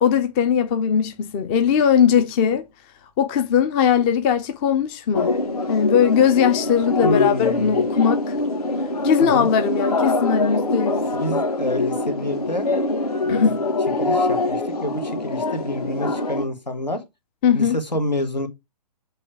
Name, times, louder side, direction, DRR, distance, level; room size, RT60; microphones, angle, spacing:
voice 1, 0.0-2.6 3.2-5.4 5.7-8.2 9.0-11.0 13.3-13.6 17.4-17.8, left 7 dB, 15° left, 0.4 m, -19 dB
sound 1, 5.1-16.4, left 2 dB, 60° left, 1.7 m, -24 dB
voice 2, 7.0-7.8 9.3-9.5 11.1-12.7 13.2-13.6 14.0-17.0 17.5-18.5, left 1 dB, 85° left, 1.6 m, -28 dB
7.0 x 3.2 x 4.9 m
figure-of-eight pair, 130°, 21 cm